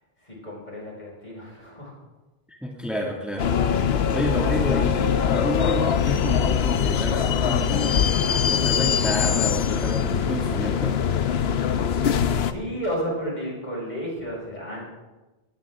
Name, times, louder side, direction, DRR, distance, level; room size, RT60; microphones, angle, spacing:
voice 1, 0.2-1.9 12.4-14.8, equal, 45° left, -4 dB, 6.3 m, -32 dB
voice 2, 2.5-8.1 8.5-11.0, equal, ahead, -1 dB, 2.2 m, -30 dB
sound 1, 3.4-12.5, left 7 dB, 80° left, 1.0 m, -22 dB
19.0 x 17.5 x 3.7 m, 1.1 s
omnidirectional pair, 1.1 m